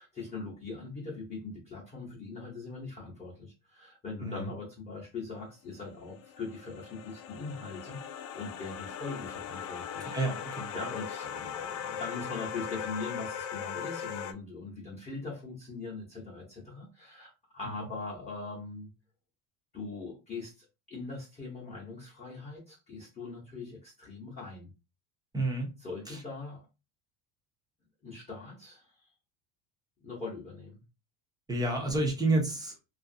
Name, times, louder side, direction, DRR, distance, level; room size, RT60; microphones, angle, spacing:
voice 1, 0.0-10.2 10.7-18.9 19.7-24.7 25.8-26.7 28.0-29.1 30.0-30.8, left 3 dB, 15° left, -6 dB, 0.7 m, -41 dB
sound 1, 5.9-14.3, left 8 dB, 85° left, 0.5 m, -39 dB
voice 2, 10.1-10.7 17.7-17.8 25.3-25.7 26.1-26.2 31.5-32.7, right 2 dB, 10° right, -1 dB, 0.4 m, -30 dB
2.9 x 2.4 x 2.6 m, 0.28 s
cardioid pair, 165°, 43 cm